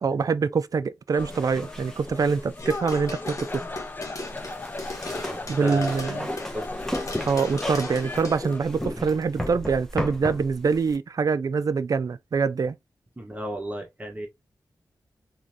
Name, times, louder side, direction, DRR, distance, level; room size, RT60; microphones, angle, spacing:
voice 1, 0.0-3.6 5.5-6.3 7.3-12.8, right 5 dB, 55° right, 0.4 m, -25 dB
sound 1, 1.1-8.6, left 2 dB, 25° left, 0.5 m, -37 dB
sound 2, 1.2-11.0, equal, 5° left, 1.1 m, -35 dB
sound 3, 2.6-6.7 6.9-8.4, left 2 dB, 50° left, 1.5 m, -37 dB
voice 2, 5.2-6.2 6.5-6.7 13.2-14.3, right 1 dB, 20° right, 1.3 m, -33 dB
3.8 x 3.1 x 2.8 m
wide cardioid pair, 90°, 7 cm